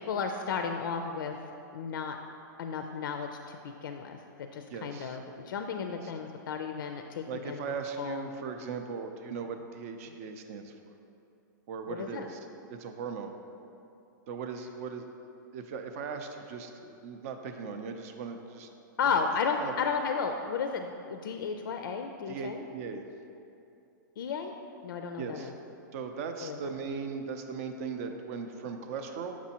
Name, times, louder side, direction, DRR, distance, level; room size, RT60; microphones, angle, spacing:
voice 1, 0.1-1.4 1.7-2.2 2.6-7.7 8.0-8.3 11.9-12.3 19.0-22.6 24.2-24.5 24.8-25.5 26.4-26.6, left 5 dB, 80° left, 5 dB, 0.4 m, -33 dB
voice 2, 4.7-5.2 5.8-6.1 7.3-10.7 11.7-12.4 12.7-13.3 14.3-15.1 15.5-18.7 19.6-19.7 22.3-23.0 25.2-25.5 25.9-29.4, right 5 dB, 45° right, 6 dB, 0.5 m, -38 dB
6.0 x 6.0 x 2.8 m, 2.7 s
hypercardioid pair, 150°, 11 cm